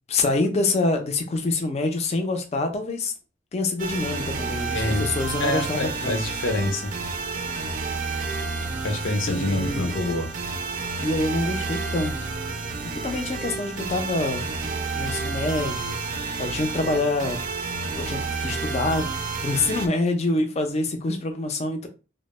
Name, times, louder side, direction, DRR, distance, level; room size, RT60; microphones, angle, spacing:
voice 1, 0.1-3.1 3.5-6.2 9.3-9.9 11.0-12.1 12.8-17.4 18.0-19.1 19.4-21.9, left 2 dB, 35° left, 0.4 m, -26 dB
sound 1, 3.8-19.9, right 4 dB, 45° right, 0.4 m, -30 dB
voice 2, 4.7-5.1 5.4-6.9 8.8-10.3, left 2 dB, 85° left, 0.6 m, -26 dB
2.0 x 2.0 x 3.0 m
head